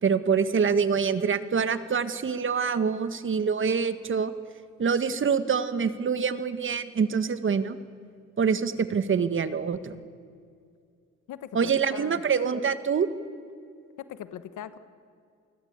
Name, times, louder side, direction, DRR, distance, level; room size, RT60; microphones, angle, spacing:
voice 1, 0.0-4.3 4.8-7.8 8.4-10.0 11.5-13.1, right 6 dB, 40° right, 12 dB, 1.7 m, -25 dB
voice 2, 11.3-12.2 14.0-14.8, left 10 dB, 80° left, 12 dB, 1.4 m, -40 dB
28.5 x 20.0 x 8.3 m, 2.3 s
cardioid pair, 90°, 30 cm